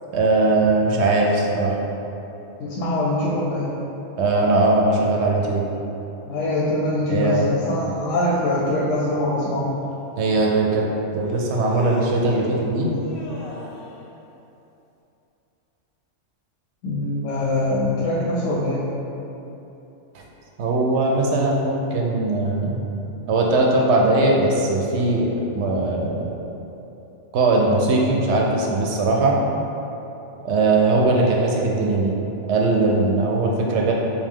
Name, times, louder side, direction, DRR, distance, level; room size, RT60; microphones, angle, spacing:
voice 1, 0.1-1.8 4.2-5.6 7.1-7.5 10.2-10.8 11.1-12.9 20.1-20.2 20.6-22.8 23.3-26.3 27.3-29.4 30.4-32.1 32.5-33.9, right 2 dB, 70° right, -1 dB, 0.8 m, -20 dB
voice 2, 2.6-3.7 6.3-9.7 16.8-18.9, left 1 dB, 85° left, -6 dB, 1.0 m, -23 dB
Human voice, 9.9-10.0 11.3-12.5 12.9-13.9, left 1 dB, 55° left, 0.8 m, -38 dB
4.8 x 2.3 x 3.6 m, 3.0 s
omnidirectional pair, 1.3 m